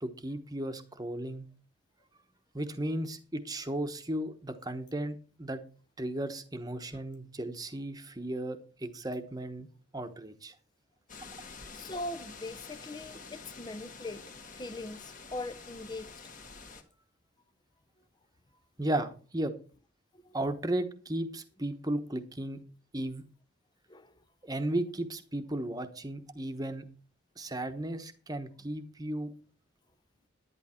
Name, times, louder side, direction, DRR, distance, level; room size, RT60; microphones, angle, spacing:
voice 1, 0.0-1.5 2.5-5.6 6.0-9.7 9.9-10.5 18.8-19.5 20.3-22.6 22.9-23.2 24.4-26.9 27.4-29.3, right 1 dB, 15° right, 1.1 m, -35 dB
sound 1, 11.1-16.8, left 4 dB, 35° left, 1.6 m, -48 dB
voice 2, 11.7-14.2 14.6-16.1 23.9-24.1, left 2 dB, 20° left, 0.6 m, -40 dB
11.0 x 10.5 x 4.4 m
head